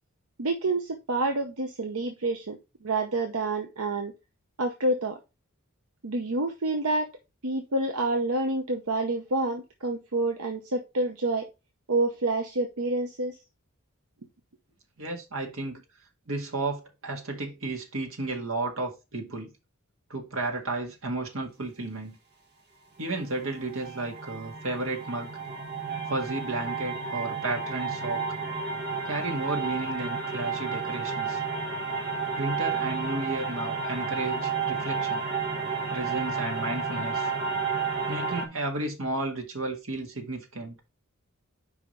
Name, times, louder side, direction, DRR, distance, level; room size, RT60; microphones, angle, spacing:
voice 1, 0.4-4.1 4.6-5.2 6.0-7.1 7.4-11.5 11.9-13.4, right 2 dB, 80° right, 0.9 m, -28 dB
voice 2, 15.0-15.8 16.3-19.5 20.1-22.2 23.0-25.3 26.1-28.4 29.1-31.4 32.4-35.2 35.9-37.3 38.1-40.7, right 2 dB, 65° right, 1.9 m, -33 dB
sound 1, 23.1-38.5, right 5 dB, 45° right, 1.3 m, -31 dB
5.0 x 4.9 x 5.0 m
head